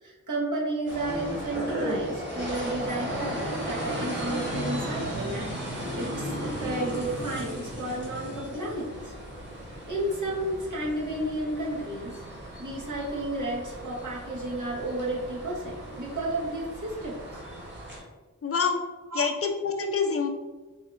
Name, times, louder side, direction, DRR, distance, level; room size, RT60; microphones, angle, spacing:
voice 1, 0.0-9.0 9.9-12.1 12.6-17.2 19.1-19.3, right 1 dB, 65° right, -5 dB, 1.0 m, -32 dB
sound 1, 0.9-18.0, equal, 35° right, 1.3 m, -35 dB
voice 2, 18.4-18.8 19.1-20.3, left 5 dB, 45° left, 4 dB, 0.5 m, -26 dB
3.7 x 2.3 x 3.3 m, 1.2 s
wide cardioid pair, 60°, 33 cm